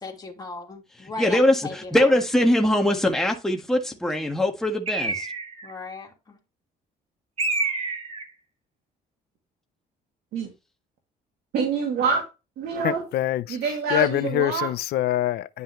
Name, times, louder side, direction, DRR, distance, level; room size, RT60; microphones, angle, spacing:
voice 1, 0.0-2.1 5.6-6.4, left 4 dB, 25° left, 3.1 m, -37 dB
voice 2, 1.2-5.3, left 1 dB, 5° left, 1.6 m, -22 dB
Bird, 4.9-5.7 7.4-8.3, right 3 dB, 35° right, 2.0 m, -27 dB
voice 3, 11.5-12.2 12.6-13.0 13.5-14.7, right 5 dB, 70° right, 2.3 m, -26 dB
voice 4, 12.8-13.6 13.9-15.6, left 14 dB, 70° left, 0.6 m, -25 dB
10.5 x 5.5 x 3.1 m
cardioid pair, 110°, 17 cm